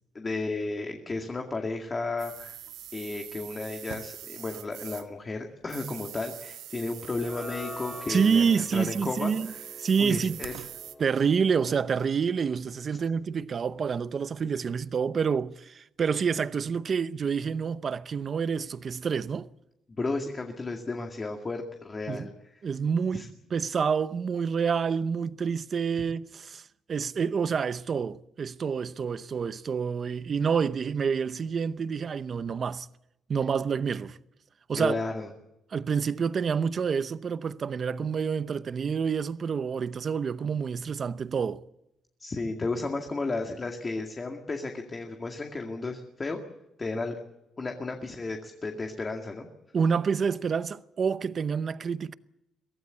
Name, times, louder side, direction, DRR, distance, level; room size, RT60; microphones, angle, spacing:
voice 1, 0.1-2.6 2.9-8.4 8.7-9.7 10.0-10.5 19.9-22.6 23.1-23.3 34.8-35.3 42.2-46.4 46.8-47.1 47.6-49.5, left 3 dB, 25° left, 2.2 m, -33 dB
sound 1, 2.2-5.2 5.6-11.0, right 11 dB, 90° right, 1.2 m, -43 dB
sound 2, 7.0-13.4, left 1 dB, 10° left, 4.3 m, -46 dB
voice 2, 8.1-9.5 9.8-10.4 11.0-19.5 22.1-22.3 22.6-26.6 26.9-32.9 33.3-34.2 34.7-35.0 35.7-41.6 49.7-52.1, right 6 dB, 40° right, 0.7 m, -28 dB
23.5 x 17.5 x 8.3 m
cardioid pair, 140°, 0 cm